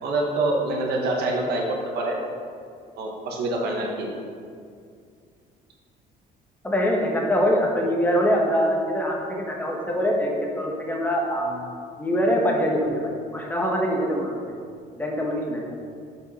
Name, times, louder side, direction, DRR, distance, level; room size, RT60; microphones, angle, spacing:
voice 1, 0.0-2.2 3.0-4.1, right 2 dB, 70° right, 0 dB, 1.4 m, -25 dB
voice 2, 6.6-11.6 12.0-14.6 15.0-15.7, equal, 10° left, -1 dB, 1.2 m, -24 dB
6.8 x 5.3 x 4.2 m, 2.2 s
cardioid pair, 110°, 17 cm